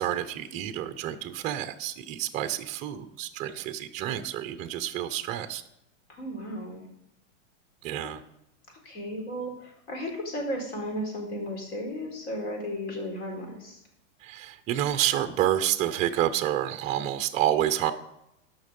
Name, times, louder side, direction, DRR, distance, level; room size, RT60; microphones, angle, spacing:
voice 1, 0.0-5.6 7.8-8.2 14.2-17.9, right 12 dB, 20° right, 10 dB, 0.4 m, -29 dB
voice 2, 6.1-6.9 8.8-13.8, equal, 65° left, 0 dB, 4.4 m, -34 dB
14.0 x 5.8 x 5.2 m, 0.83 s
supercardioid pair, 150°, 39 cm